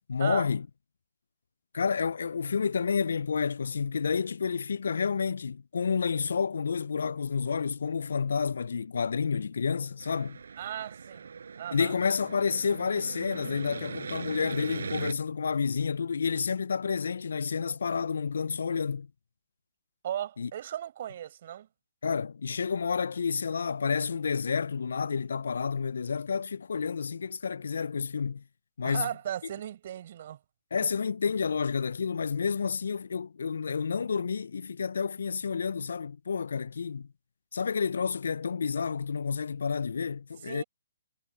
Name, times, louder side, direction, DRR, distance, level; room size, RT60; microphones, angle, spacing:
voice 1, 0.1-0.7 1.7-10.4 11.7-19.1 20.4-20.5 22.0-28.4 28.8-29.1 30.7-37.1 37.5-40.6, left 5 dB, 65° left, 0.5 m, -30 dB
sound 1, 10.0-15.1, right 6 dB, 65° right, 5.5 m, -40 dB
voice 2, 10.6-11.3 11.6-11.9 20.0-21.7 28.8-30.4 40.4-40.6, right 11 dB, 50° right, 5.2 m, -36 dB
figure-of-eight pair, 130°, 0 cm